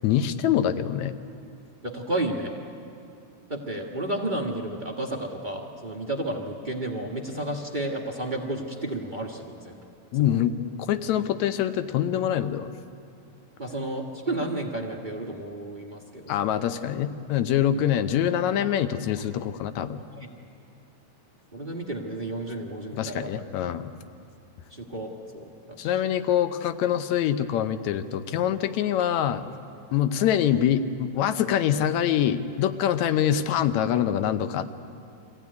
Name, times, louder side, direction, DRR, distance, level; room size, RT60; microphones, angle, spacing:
voice 1, 0.0-1.1 10.1-10.6 10.9-12.7 16.3-20.0 22.9-23.9 25.8-29.5 29.9-34.7, left 10 dB, 75° left, 10 dB, 2.1 m, -25 dB
voice 2, 1.8-2.5 3.5-9.8 10.2-10.4 13.6-16.5 20.1-20.3 21.5-23.4 24.7-25.9, right 1 dB, 30° right, 0 dB, 0.8 m, -32 dB
24.5 x 15.5 x 9.5 m, 2.5 s
omnidirectional pair, 3.3 m